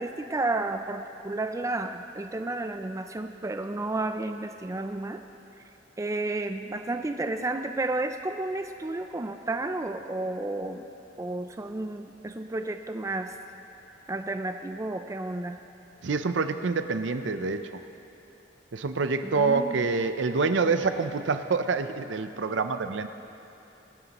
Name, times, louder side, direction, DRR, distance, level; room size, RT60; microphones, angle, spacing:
voice 1, 0.0-5.2 6.0-10.8 11.2-13.3 14.1-15.6 19.2-19.8, right 2 dB, 15° right, 7 dB, 0.4 m, -32 dB
voice 2, 16.0-17.7 18.7-23.1, right 4 dB, 75° right, 9 dB, 0.6 m, -26 dB
24.5 x 9.3 x 3.0 m, 2.9 s
head